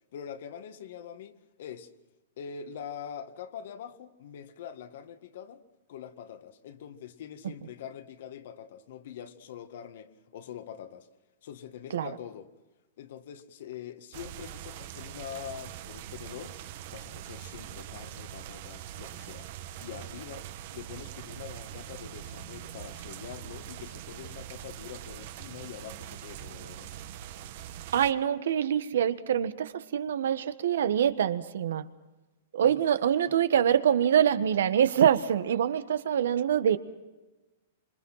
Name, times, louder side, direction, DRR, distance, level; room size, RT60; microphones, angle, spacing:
voice 1, 0.1-1.9 2.4-5.6 5.9-11.1 11.4-12.5 13.0-16.6 16.9-20.5 20.7-27.0 32.6-32.8, left 8 dB, 60° left, 1.9 m, -44 dB
sound 1, 14.1-28.1, right 11 dB, 45° right, 1.3 m, -43 dB
voice 2, 27.9-31.9 32.5-36.8, right 9 dB, 80° right, 1.5 m, -25 dB
26.5 x 25.5 x 5.8 m
supercardioid pair, 165°, 0 cm